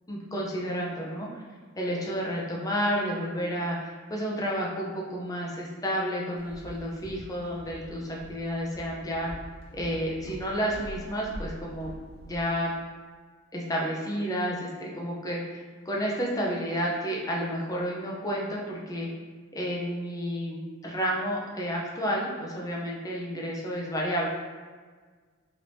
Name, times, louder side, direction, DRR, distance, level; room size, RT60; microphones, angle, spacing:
voice 1, 0.1-1.3 1.8-9.3 9.7-11.9 12.3-12.7 13.5-19.1 19.5-24.3, equal, 15° left, -3 dB, 0.5 m, -31 dB
Walk footsteps, 6.4-12.5, equal, 85° left, 0.6 m, -44 dB
3.3 x 3.0 x 2.6 m, 1.5 s
head